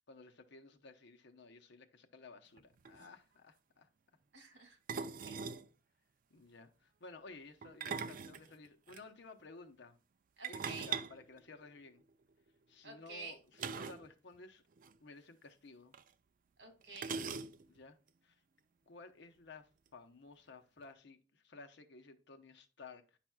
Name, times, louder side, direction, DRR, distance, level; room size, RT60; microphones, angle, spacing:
voice 1, 0.1-3.9 4.5-4.7 6.3-10.0 10.5-12.0 12.7-14.6 15.0-16.0 17.7-18.0 18.2-18.3 18.9-23.2, left 3 dB, 65° left, 0.8 m, -55 dB
sound 1, 2.6-2.7 2.8-3.1 4.9-5.7 7.6-9.0 10.4-12.1 13.6-14.1 14.3-14.4 14.8-14.9 15.9-16.0 17.0-17.8, right 6 dB, 45° right, 0.4 m, -41 dB
voice 2, 4.3-5.5 10.4-11.0 12.8-13.4 16.6-17.2, right 3 dB, 65° right, 2.3 m, -50 dB
9.9 x 5.9 x 2.3 m
head